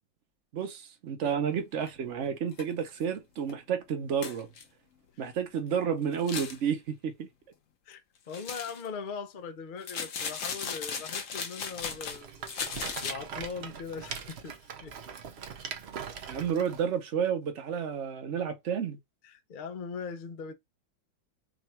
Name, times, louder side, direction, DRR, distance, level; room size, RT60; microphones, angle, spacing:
voice 1, 0.5-4.5 5.2-7.3 16.3-19.0, right 7 dB, 55° right, 0.8 m, -31 dB
sound 1, 1.9-2.0 2.5-2.6 3.0-3.1 3.5-3.6 4.2-4.6 6.1-6.6 8.3-8.9 9.8-12.2 12.5-13.1, left 6 dB, 55° left, 0.9 m, -36 dB
voice 2, 7.9-12.5 13.0-15.0 19.2-20.5, left 5 dB, 80° left, 0.4 m, -40 dB
Rattle, 11.7-16.8, right 6 dB, 80° right, 0.5 m, -41 dB
3.8 x 2.4 x 4.3 m
omnidirectional pair, 2.1 m